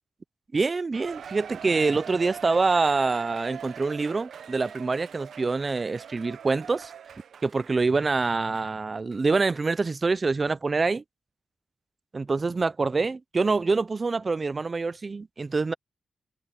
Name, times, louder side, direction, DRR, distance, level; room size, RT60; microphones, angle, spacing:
voice 1, 0.5-6.9 7.4-11.0 12.1-15.7, right 4 dB, 30° right, 0.4 m, -25 dB
Cheering, 0.9-8.7 9.1-9.2 9.9-10.0, right 7 dB, 75° right, 0.8 m, -43 dB
wide cardioid pair, 150°, 0 cm